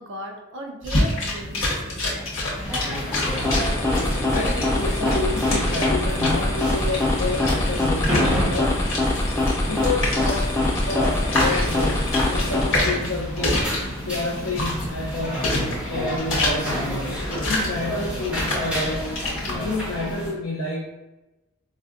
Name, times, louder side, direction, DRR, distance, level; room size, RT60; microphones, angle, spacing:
voice 1, 0.0-2.3, right 1 dB, 60° right, 2 dB, 0.5 m, -37 dB
sound 1, 0.8-19.6, left 1 dB, 65° left, 1.0 m, -28 dB
sound 2, 2.6-20.3, equal, 5° right, 0.9 m, -31 dB
sound 3, 3.1-13.0, left 1 dB, 10° left, 0.3 m, -24 dB
voice 2, 4.3-8.8 9.6-10.5 10.8-13.6 14.0-15.4 15.9-16.8 17.5-20.9, left 2 dB, 80° left, -4 dB, 0.5 m, -29 dB
4.1 x 2.5 x 2.4 m, 1.0 s
head